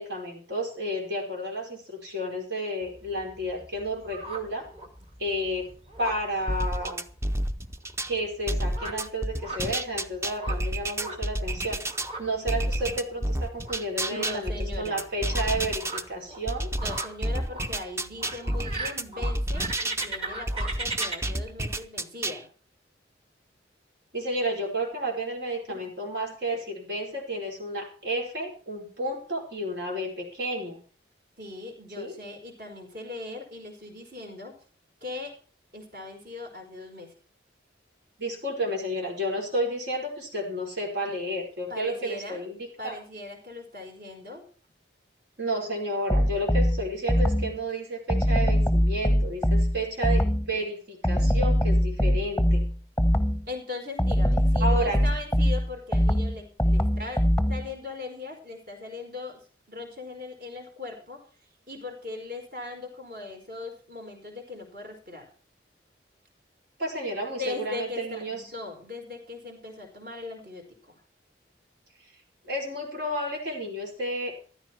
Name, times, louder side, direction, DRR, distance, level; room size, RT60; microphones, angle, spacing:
voice 1, 0.0-4.6 5.2-7.0 8.1-11.8 12.2-16.7 24.1-30.8 32.0-32.2 38.2-43.0 45.4-52.6 54.6-55.0 66.8-68.4 72.4-74.3, right 1 dB, 70° right, -1 dB, 4.9 m, -31 dB
sound 1, 2.8-21.2, right 2 dB, 30° right, 2.3 m, -40 dB
sound 2, 6.5-8.1 8.5-12.1 12.5-16.0 16.5-20.1 20.5-22.4, right 1 dB, 15° right, 0.6 m, -30 dB
voice 2, 14.1-15.0 16.8-22.5 31.4-34.5 35.0-35.3 35.7-37.1 41.7-42.4 42.8-44.4 50.5-50.6 51.2-51.3 53.5-57.2 57.5-59.4 59.7-61.2 61.7-65.3 67.4-70.9, left 3 dB, 50° right, 2 dB, 4.8 m, -39 dB
sound 3, 46.1-47.6 48.1-50.6 51.0-53.5 54.0-57.8, equal, 5° left, 1.0 m, -23 dB
14.5 x 13.0 x 4.6 m, 0.40 s
head